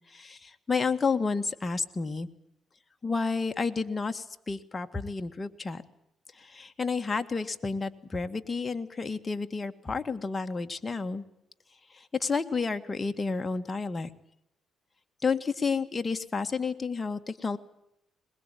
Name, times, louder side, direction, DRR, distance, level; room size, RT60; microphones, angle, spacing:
voice 1, 0.1-2.3 3.0-5.8 6.3-11.2 11.9-14.1 15.2-17.6, left 4 dB, 25° left, 6 dB, 1.9 m, -31 dB
22.0 x 21.0 x 9.3 m, 0.79 s
cardioid pair, 90°, 0 cm